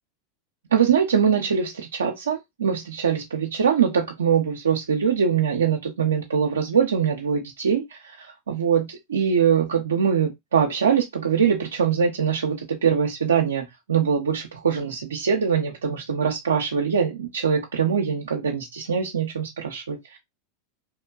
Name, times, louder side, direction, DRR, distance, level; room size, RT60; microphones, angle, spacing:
voice 1, 0.7-20.2, right 7 dB, 85° right, 0.4 m, -23 dB
2.9 x 2.2 x 2.2 m
hypercardioid pair, 95°, 0 cm